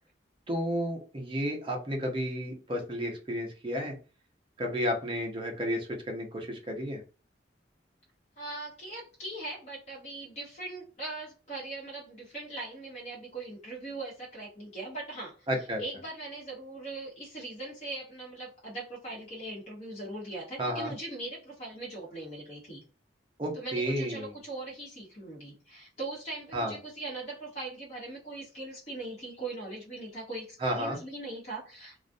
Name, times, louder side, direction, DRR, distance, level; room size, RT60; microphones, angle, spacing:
voice 1, 0.5-4.0 4.6-7.0 15.5-15.8 20.6-20.9 23.4-24.3 26.5-26.7 30.6-31.0, equal, 30° right, 2 dB, 0.6 m, -32 dB
voice 2, 8.4-15.3 15.8-22.8 23.6-32.0, right 2 dB, 35° left, -5 dB, 0.8 m, -40 dB
2.3 x 2.0 x 2.5 m, 0.34 s
head